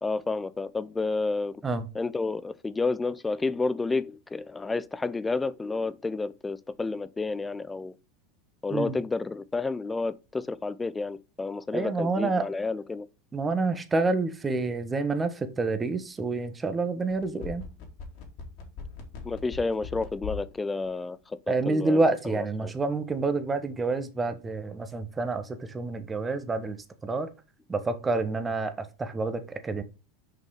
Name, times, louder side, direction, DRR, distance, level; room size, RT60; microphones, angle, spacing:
voice 1, 0.0-1.6 1.9-8.0 8.6-13.1 19.2-21.4 21.6-22.7, left 3 dB, 15° left, 0.6 m, -30 dB
voice 2, 11.7-12.4 13.3-15.3 15.6-17.6 21.5-25.4 25.7-26.8 27.0-27.3 27.7-28.7 29.0-29.8, right 3 dB, 20° right, 1.3 m, -28 dB
sound 1, 17.1-20.5 20.8-20.9, left 6 dB, 55° left, 2.9 m, -39 dB
6.4 x 5.4 x 4.9 m
hypercardioid pair, 85°, 0 cm